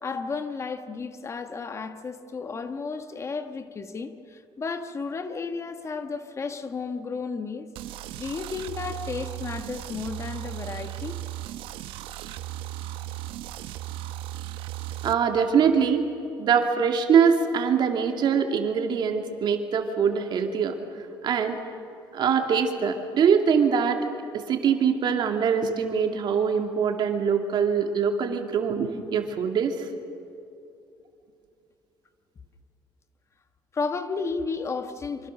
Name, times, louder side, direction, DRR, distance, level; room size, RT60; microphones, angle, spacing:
voice 1, 0.0-7.7 8.2-11.2 33.7-35.3, left 4 dB, 35° left, 1.3 m, -33 dB
sound 1, 7.7-15.1, right 13 dB, 85° right, 0.9 m, -36 dB
voice 2, 15.0-16.0 16.4-20.8 21.2-21.6 22.1-24.1 24.3-29.9, right 6 dB, 60° right, 2.5 m, -23 dB
26.0 x 25.5 x 6.5 m
cardioid pair, 105°, 9 cm